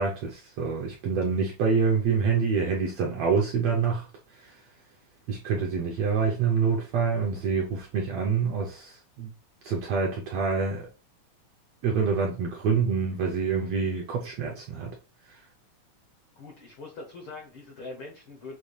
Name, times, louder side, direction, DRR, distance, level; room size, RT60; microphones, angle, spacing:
voice 1, 0.0-4.1 4.4-4.5 5.3-9.3 9.6-10.9 11.8-14.9, right 5 dB, 75° right, 1.5 m, -26 dB
voice 2, 16.4-18.6, left 3 dB, 75° left, 1.2 m, -42 dB
6.8 x 2.4 x 3.1 m
omnidirectional pair, 3.7 m